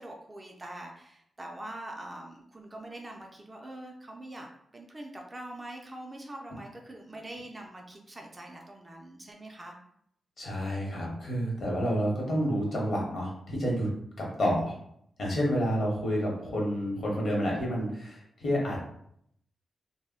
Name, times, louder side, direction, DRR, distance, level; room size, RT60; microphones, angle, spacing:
voice 1, 0.0-9.7, right 1 dB, 20° right, 0 dB, 0.3 m, -44 dB
voice 2, 10.4-13.9 14.2-14.7 15.2-18.8, equal, 55° left, -2 dB, 0.9 m, -29 dB
2.1 x 2.0 x 3.5 m, 0.70 s
wide cardioid pair, 125°, 0 cm